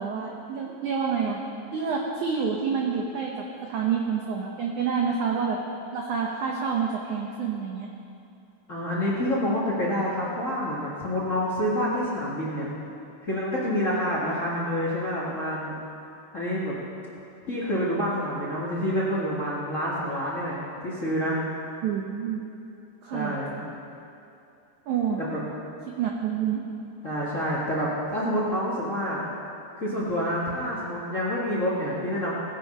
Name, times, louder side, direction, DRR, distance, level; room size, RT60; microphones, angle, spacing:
voice 1, 0.0-1.4 1.7-5.6 5.9-7.9 21.8-22.4 23.0-23.3 24.9-25.2 26.0-26.6, right 6 dB, 80° right, -1 dB, 1.7 m, -28 dB
voice 2, 8.7-12.7 13.2-15.7 16.3-16.7 17.5-21.4 23.1-23.6 25.2-25.4 27.0-29.2 29.8-32.3, equal, 65° left, -7 dB, 0.7 m, -27 dB
19.5 x 7.7 x 5.4 m, 2.7 s
omnidirectional pair, 4.9 m